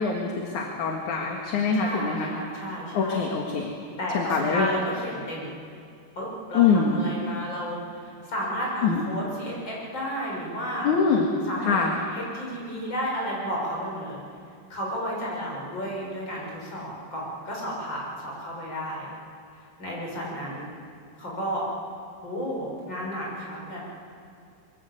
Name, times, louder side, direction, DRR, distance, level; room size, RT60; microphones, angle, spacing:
voice 1, 0.0-2.3 2.9-3.7 4.1-4.7 6.5-7.0 8.8-9.0 10.8-11.3 11.6-11.9, left 5 dB, 60° left, 1 dB, 3.1 m, -24 dB
voice 2, 1.7-3.2 4.0-5.6 6.2-10.9 11.4-11.8 12.1-14.2 14.7-19.1 19.8-20.7 21.2-21.6 22.2-24.0, equal, 30° left, -3 dB, 7.0 m, -32 dB
25.5 x 22.5 x 8.1 m, 2.4 s
omnidirectional pair, 4.2 m